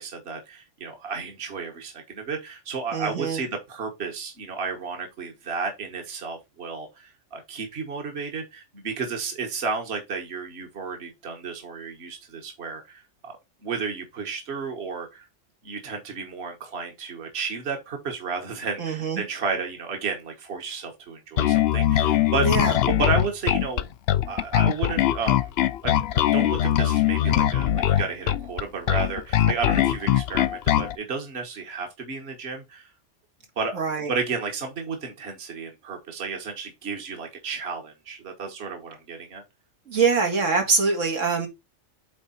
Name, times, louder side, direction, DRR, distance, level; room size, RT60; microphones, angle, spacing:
voice 1, 0.0-13.3 13.6-15.2 15.6-22.5 22.8-23.9 24.3-25.5 25.8-32.9 33.6-39.4, right 5 dB, 55° right, 1.6 m, -32 dB
voice 2, 2.9-3.4 18.8-19.2 22.4-22.8 33.7-34.1 39.9-41.5, right 4 dB, 85° right, 2.3 m, -24 dB
Bass guitar, 21.4-30.9, left 11 dB, 65° left, 0.7 m, -21 dB
8.6 x 3.6 x 4.3 m
omnidirectional pair, 1.3 m